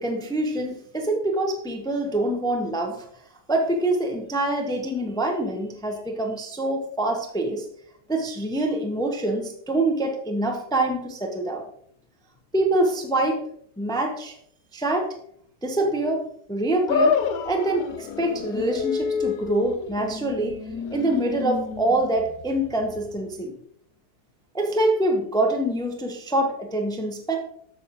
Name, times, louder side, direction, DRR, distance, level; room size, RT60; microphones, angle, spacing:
voice 1, 0.0-3.0 3.5-7.6 8.1-11.6 12.5-13.4 13.8-14.4 14.7-15.1 15.6-16.2 16.5-17.2 17.4-20.6 20.9-23.5 24.5-27.4, right 1 dB, 5° left, 3 dB, 0.6 m, -25 dB
sound 1, 16.9-23.3, left 5 dB, 70° left, 1.0 m, -28 dB
8.5 x 7.3 x 3.0 m, 0.66 s
omnidirectional pair, 1.8 m